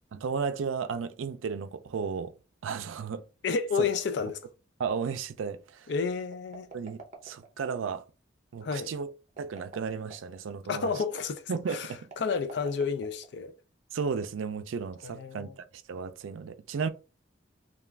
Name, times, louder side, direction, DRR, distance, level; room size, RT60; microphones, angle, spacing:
voice 1, 0.1-2.3 2.6-3.2 4.8-5.9 6.7-8.0 8.5-9.1 9.4-10.9 11.5-12.1 13.9-16.9, right 5 dB, 90° right, 0.4 m, -34 dB
voice 2, 3.4-4.4 5.9-6.7 8.6-8.9 10.7-13.5 15.0-15.5, left 5 dB, 60° left, 0.4 m, -31 dB
sound 1, 6.3-7.7 9.3-10.4 12.0-13.6, right 4 dB, 40° right, 0.6 m, -48 dB
2.4 x 2.3 x 3.2 m
head